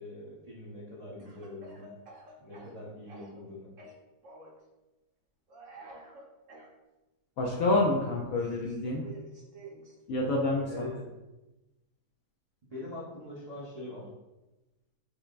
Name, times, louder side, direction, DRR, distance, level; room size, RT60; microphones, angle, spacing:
voice 1, 0.0-1.9 2.4-3.7 10.7-11.1 12.7-14.1, left 2 dB, 35° right, -8 dB, 0.6 m, -43 dB
Speech / Cough, 1.2-3.5 3.8-4.6 5.5-6.7 7.6-10.0, right 2 dB, 55° right, 1.1 m, -50 dB
voice 2, 7.4-9.0 10.1-10.9, left 2 dB, 70° left, -1 dB, 0.9 m, -28 dB
5.5 x 3.2 x 2.4 m, 1.0 s
omnidirectional pair, 1.8 m